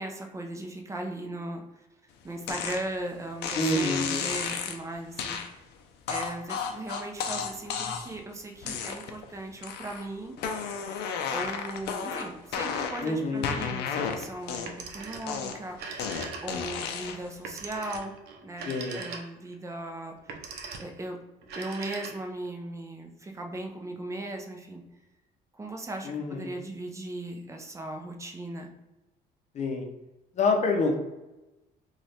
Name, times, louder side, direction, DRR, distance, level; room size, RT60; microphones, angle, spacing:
voice 1, 0.0-5.6 6.1-10.4 11.3-16.0 16.4-18.1 18.4-20.3 20.8-21.2 21.6-24.8 25.5-28.7, right 1 dB, 15° right, 3 dB, 0.6 m, -38 dB
sound 1, 2.5-2.8 3.4-4.8 5.2-5.5 6.1-8.2 8.6-9.2 9.6-10.1 10.4-13.1 13.4-14.9 15.3-17.3, left 6 dB, 80° left, 0.5 m, -33 dB
voice 2, 3.6-4.2 13.0-13.5 18.7-19.0 26.0-26.5 29.5-29.9 30.4-30.9, left 2 dB, 45° left, 2 dB, 0.7 m, -27 dB
Telephone, 14.5-15.4 15.7-16.8 17.4-19.5 20.2-21.0 21.4-22.5, right 5 dB, 75° right, 0.6 m, -40 dB
3.1 x 2.4 x 4.1 m, 1.0 s
cardioid pair, 110°, 17 cm